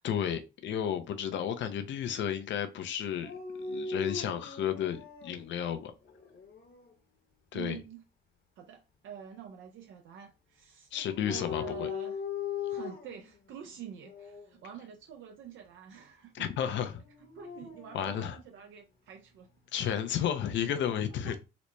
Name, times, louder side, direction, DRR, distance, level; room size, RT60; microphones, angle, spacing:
voice 1, 0.0-3.3 3.7-5.9 7.5-7.8 10.9-11.9 16.3-17.0 17.9-18.4 19.7-21.3, left 9 dB, 70° left, 0.6 m, -32 dB
Dog, 3.2-5.4 6.1-6.8 10.9-13.2 14.0-14.5 17.1-18.3, left 6 dB, 50° left, 1.1 m, -39 dB
voice 2, 7.5-8.0 8.6-10.9 11.3-12.2 12.6-16.9 17.2-19.5 20.1-20.2 21.2-21.4, right 8 dB, 75° right, 0.5 m, -47 dB
4.0 x 2.1 x 3.1 m
cardioid pair, 90°, 20 cm